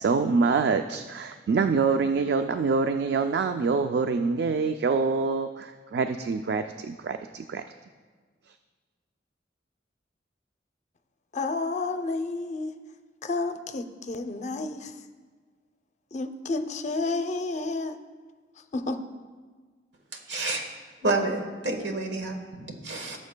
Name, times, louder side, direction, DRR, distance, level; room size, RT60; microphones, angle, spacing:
voice 1, 0.0-7.6, right 4 dB, 65° right, 8 dB, 0.3 m, -25 dB
voice 2, 11.3-12.7 13.2-14.9 16.1-18.0 18.7-19.0, left 3 dB, 40° left, 8 dB, 0.5 m, -30 dB
voice 3, 20.1-20.7 21.0-23.2, right 2 dB, 90° right, 4 dB, 1.2 m, -29 dB
17.5 x 7.1 x 2.2 m, 1.5 s
head